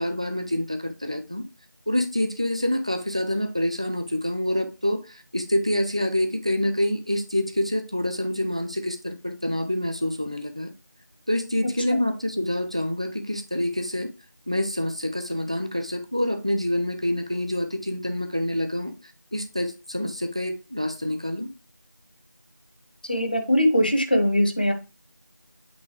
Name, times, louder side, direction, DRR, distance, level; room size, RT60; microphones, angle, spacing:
voice 1, 0.0-1.4 1.9-10.7 11.3-14.1 14.5-18.9 19.3-21.5, left 1 dB, 20° right, 0.5 m, -27 dB
voice 2, 23.1-24.7, equal, 30° left, 1.0 m, -21 dB
8.3 x 3.5 x 4.7 m
figure-of-eight pair, 175°, 10 cm